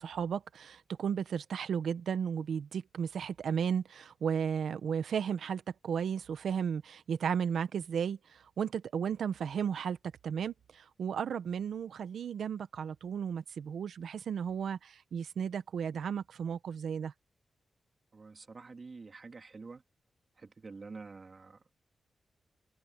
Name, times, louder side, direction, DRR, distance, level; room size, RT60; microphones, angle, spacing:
voice 1, 0.0-10.0 10.2-17.1, right 7 dB, 85° right, 1.2 m, -34 dB
voice 2, 18.1-19.8 20.4-21.8, right 4 dB, 50° right, 3.4 m, -48 dB
cardioid pair, 60°, 0 cm